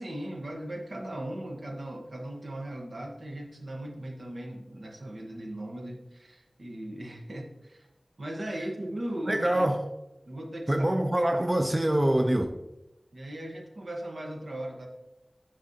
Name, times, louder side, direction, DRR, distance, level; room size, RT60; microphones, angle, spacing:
voice 1, 0.0-7.9 8.2-9.7 10.3-10.8 13.1-14.9, right 1 dB, 75° right, 1.0 m, -38 dB
voice 2, 9.3-9.8 10.7-12.5, right 1 dB, 25° right, 0.5 m, -24 dB
8.8 x 5.1 x 2.8 m
wide cardioid pair, 45°, 0 cm